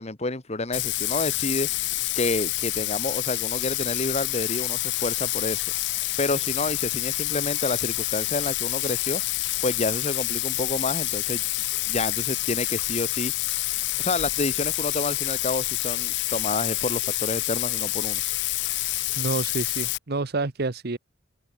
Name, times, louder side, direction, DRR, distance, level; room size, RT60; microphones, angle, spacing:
voice 1, 0.0-1.7 2.1-5.6 6.2-9.2 9.6-11.4 11.9-13.3 14.0-18.2, left 2 dB, 35° left, 1.7 m, -29 dB
Bathtub (filling or washing), 0.7-20.0, left 19 dB, 60° left, 0.4 m, -28 dB
voice 2, 19.2-21.0, right 3 dB, 55° right, 1.0 m, -28 dB
head